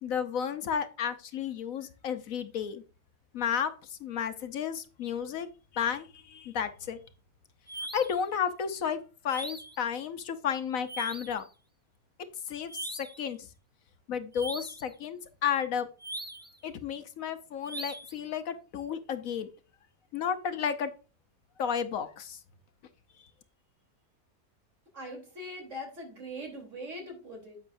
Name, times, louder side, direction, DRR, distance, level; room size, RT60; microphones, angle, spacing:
voice 1, 0.0-2.8 3.3-7.0 7.9-9.0 9.2-11.4 12.5-13.5 14.1-15.9 16.6-19.5 20.1-20.9 21.6-22.4, left 7 dB, 70° left, 10 dB, 1.2 m, -32 dB
sound 1, 7.7-8.2 9.3-9.8 10.9-11.4 12.7-13.2 14.3-14.9 16.0-16.6 17.6-18.2, right 2 dB, 15° right, 0.3 m, -40 dB
voice 2, 24.9-27.6, equal, 55° right, 2 dB, 3.8 m, -41 dB
10.0 x 8.1 x 2.6 m, 0.33 s
omnidirectional pair, 1.6 m